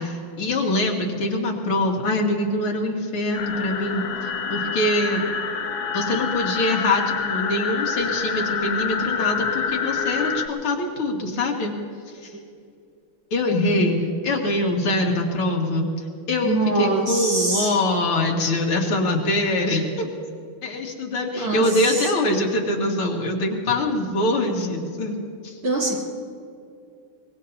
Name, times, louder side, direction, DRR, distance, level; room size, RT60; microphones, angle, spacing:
voice 1, 0.0-5.2 5.9-11.7 12.1-12.3 13.3-15.9 16.3-20.1 20.6-25.2 25.4-25.6, left 1 dB, 80° left, 0 dB, 2.7 m, -24 dB
sound 1, 3.3-10.5, left 6 dB, 55° left, 1.3 m, -27 dB
voice 2, 16.4-17.8 21.3-22.1 25.6-26.0, right 2 dB, 75° right, -4 dB, 4.1 m, -24 dB
24.0 x 21.0 x 2.8 m, 2.4 s
omnidirectional pair, 2.4 m